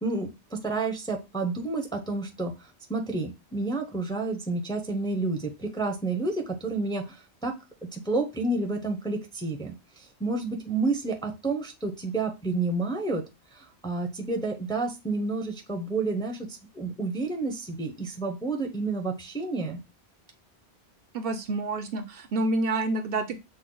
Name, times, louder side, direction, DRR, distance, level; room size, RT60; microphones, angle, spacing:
voice 1, 0.0-7.5 7.9-13.2 13.5-19.8, right 3 dB, 5° left, 2 dB, 0.5 m, -30 dB
voice 2, 21.1-23.4, right 2 dB, 65° right, 9 dB, 0.7 m, -28 dB
6.2 x 2.1 x 3.8 m, 0.25 s
omnidirectional pair, 1.1 m